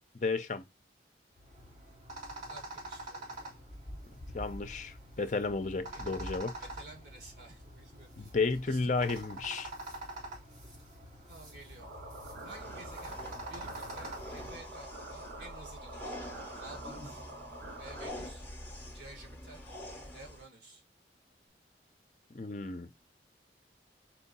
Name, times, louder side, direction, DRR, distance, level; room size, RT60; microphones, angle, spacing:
voice 1, 0.1-0.6 4.3-6.5 8.2-9.7 22.3-22.9, left 3 dB, 45° left, 0.5 m, -33 dB
sound 1, 1.4-14.6, right 1 dB, 45° right, 2.2 m, -45 dB
voice 2, 2.5-3.5 5.9-6.2 6.7-8.3 8.7-9.4 11.3-11.9 12.4-16.2 16.6-17.2 17.8-18.4 18.9-19.6 20.1-20.8, right 2 dB, 70° right, 1.8 m, -52 dB
sound 2, 11.8-18.1, right 2 dB, 90° right, 2.4 m, -47 dB
sound 3, 12.5-20.5, left 1 dB, 10° left, 1.4 m, -46 dB
4.5 x 2.8 x 4.1 m
head